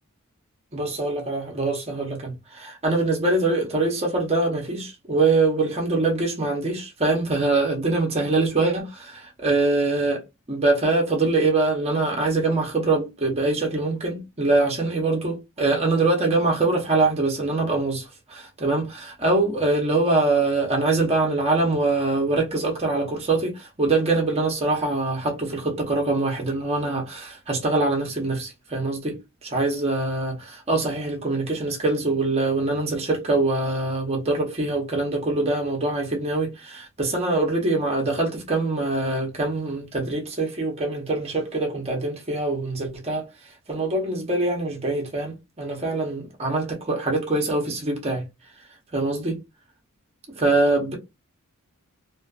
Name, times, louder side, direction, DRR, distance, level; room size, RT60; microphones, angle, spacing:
voice 1, 0.7-10.2 10.5-43.3 43.7-48.3 48.9-49.4 50.4-50.9, right 2 dB, 30° right, 0.7 m, -24 dB
2.5 x 2.4 x 2.3 m
head